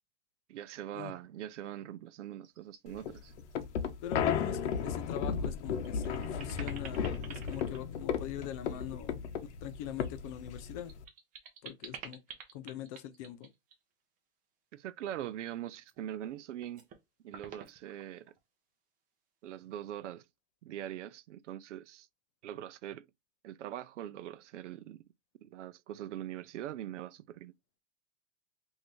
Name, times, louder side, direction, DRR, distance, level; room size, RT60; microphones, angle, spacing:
voice 1, 0.5-3.3 4.5-4.6 14.7-16.8 17.2-18.3 19.4-20.2 20.6-22.1 22.4-23.1 23.4-25.0 25.4-27.5, right 11 dB, 85° right, 0.5 m, -42 dB
sound 1, 2.4-2.8 3.2-3.5 3.8-3.9 5.2-5.3 5.7-8.7 10.3-13.8 15.7-16.3 16.6-17.0 17.3-18.4, right 7 dB, 25° right, 0.7 m, -50 dB
sound 2, 2.9-11.0, left 7 dB, 70° left, 0.8 m, -35 dB
voice 2, 4.0-10.9 11.6-12.2 12.5-13.5, left 11 dB, 30° left, 0.4 m, -42 dB
3.2 x 2.7 x 3.0 m
hypercardioid pair, 140°, 35 cm